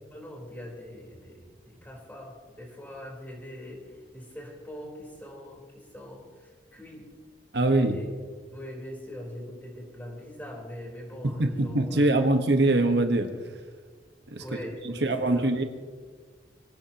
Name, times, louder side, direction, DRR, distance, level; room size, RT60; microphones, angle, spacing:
voice 1, 0.1-7.1 7.7-8.1 8.5-12.4 14.4-15.5, equal, 10° left, -2 dB, 4.0 m, -42 dB
voice 2, 7.5-7.9 11.4-13.3 14.3-14.4 14.8-15.6, right 2 dB, 70° right, 5 dB, 1.3 m, -23 dB
25.0 x 17.5 x 3.0 m, 1.5 s
head